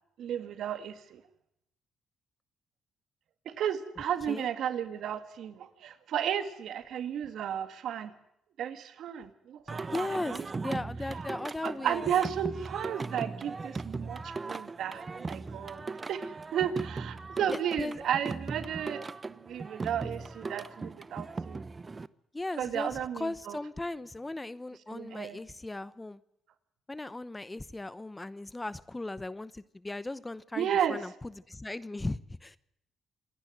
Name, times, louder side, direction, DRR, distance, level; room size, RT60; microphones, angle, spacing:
voice 1, 0.2-1.2 3.5-8.1 8.6-10.4 10.6-10.8 11.6-15.8 16.1-16.2 16.5-21.6 22.6-23.6 24.9-25.4 30.6-31.0, right 9 dB, 75° right, 11 dB, 1.9 m, -33 dB
Singing, 9.7-22.1, right 4 dB, 30° right, 0.8 m, -38 dB
voice 2, 9.9-12.0 17.5-18.0 22.3-26.2 26.9-32.6, left 2 dB, 15° left, 18 dB, 0.9 m, -37 dB
27.0 x 10.5 x 9.2 m, 0.79 s
cardioid pair, 90°, 0 cm